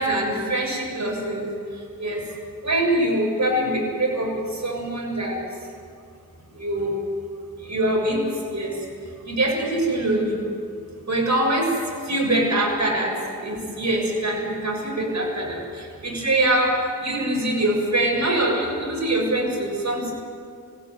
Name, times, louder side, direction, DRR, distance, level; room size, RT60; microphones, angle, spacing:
voice 1, 0.0-2.2 2.6-5.4 6.5-7.0 7.6-8.2 8.5-8.8 9.2-10.5 11.1-11.7 12.0-13.1 13.4-16.7 17.0-20.1, right 1 dB, 55° right, 0 dB, 7.0 m, -24 dB
26.0 x 17.0 x 9.5 m, 2.2 s
wide cardioid pair, 70°, 34 cm